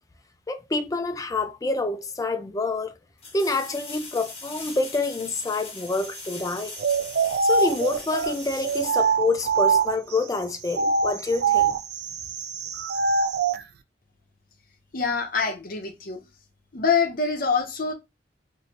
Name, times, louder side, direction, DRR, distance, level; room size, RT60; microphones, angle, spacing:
voice 1, 0.5-3.0 3.3-6.8 7.4-11.8, left 3 dB, 20° left, 0.4 m, -27 dB
sound 1, 3.2-9.8 12.7-12.8, left 4 dB, 35° left, 1.0 m, -41 dB
sound 2, 6.8-10.2 10.7-13.6, right 5 dB, 60° right, 0.3 m, -24 dB
voice 2, 14.9-16.2 16.7-17.9, left 5 dB, 50° left, 0.7 m, -25 dB
3.1 x 2.6 x 2.8 m
head